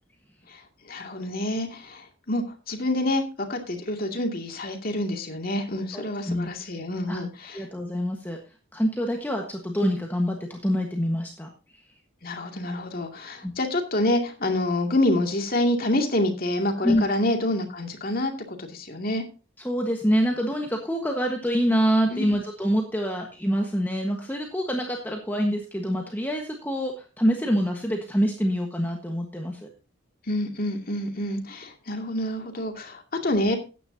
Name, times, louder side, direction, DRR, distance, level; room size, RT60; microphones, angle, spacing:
voice 1, 0.5-7.6 12.2-19.2 22.1-22.4 30.3-33.6, left 1 dB, 45° left, 3 dB, 2.3 m, -27 dB
voice 2, 5.9-6.5 7.1-7.2 7.5-8.4 8.7-11.5 13.4-13.5 16.8-17.1 19.6-29.7, equal, 10° left, 2 dB, 1.3 m, -26 dB
14.5 x 10.0 x 2.8 m, 0.32 s
head